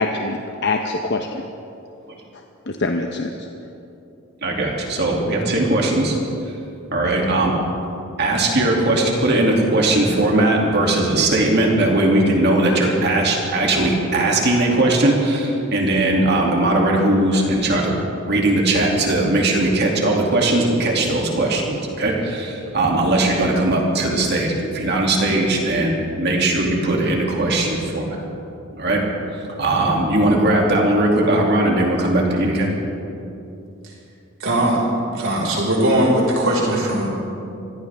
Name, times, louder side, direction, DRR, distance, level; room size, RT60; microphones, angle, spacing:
voice 1, 0.0-1.4 2.7-3.3, left 3 dB, 55° left, 3 dB, 0.8 m, -23 dB
voice 2, 4.4-6.2 6.9-7.5 8.2-28.2 28.7-29.0 29.6-32.7, right 2 dB, 55° right, -1 dB, 2.6 m, -19 dB
voice 3, 34.4-34.9 35.1-37.1, right 1 dB, 70° right, -3 dB, 5.0 m, -19 dB
25.0 x 16.5 x 3.5 m, 2.7 s
head